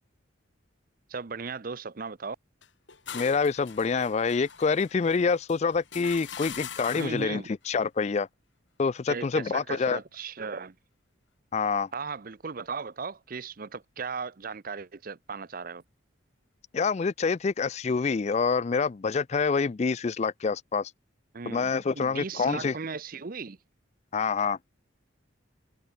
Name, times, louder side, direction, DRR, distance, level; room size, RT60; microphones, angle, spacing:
voice 1, 1.1-2.4 6.5-6.6 7.0-7.5 9.1-10.7 11.9-15.8 21.3-23.6, right 5 dB, 45° right, 0.6 m, -37 dB
sound 1, 2.6-7.3, left 7 dB, 70° left, 2.5 m, -42 dB
voice 2, 3.1-8.3 8.8-10.0 11.5-11.9 16.7-20.9 21.5-22.7 24.1-24.6, left 5 dB, 35° left, 0.4 m, -26 dB
head